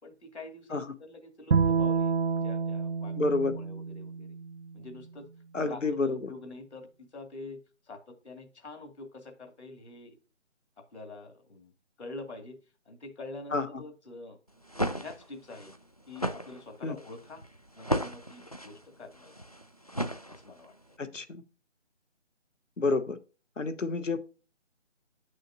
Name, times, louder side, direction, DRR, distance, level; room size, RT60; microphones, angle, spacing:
voice 1, 0.0-2.2 2.4-4.3 4.7-5.3 5.6-7.6 7.9-10.2 10.8-11.7 12.0-12.6 12.9-14.4 15.0-15.7 16.1-17.4 17.7-19.5 20.3-20.7, left 2 dB, 65° left, 2.3 m, -46 dB
Bowed string instrument, 1.5-4.8, right 5 dB, 60° right, 0.5 m, -29 dB
voice 2, 3.2-3.6 5.5-6.3 13.5-13.6 16.8-16.9 21.0-21.4 22.8-23.2 23.6-24.2, left 3 dB, 85° left, 1.2 m, -29 dB
sound 1, 14.5-20.8, equal, 35° left, 0.4 m, -35 dB
9.8 x 6.3 x 2.6 m
figure-of-eight pair, 160°, 37 cm